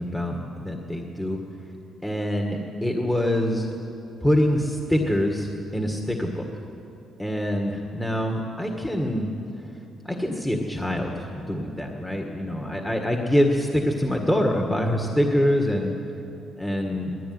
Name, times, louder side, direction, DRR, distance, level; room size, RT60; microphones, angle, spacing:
voice 1, 0.0-1.4 2.0-3.7 4.2-6.5 7.2-9.3 10.0-15.9 16.6-17.1, equal, 10° left, 2 dB, 1.9 m, -25 dB
19.5 x 15.0 x 9.7 m, 2.9 s
cardioid pair, 90°, 0 cm